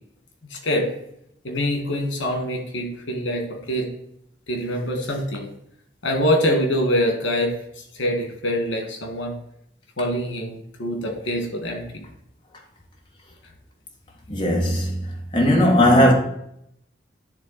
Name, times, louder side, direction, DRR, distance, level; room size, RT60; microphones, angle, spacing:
voice 1, 0.5-0.9 1.4-3.9 4.5-5.5 6.0-7.6 7.9-9.3 10.0-12.0, equal, 85° left, 1.9 m, -24 dB
voice 2, 14.3-15.0 15.3-16.1, equal, 25° left, 1.3 m, -17 dB
10.0 x 3.5 x 4.2 m
head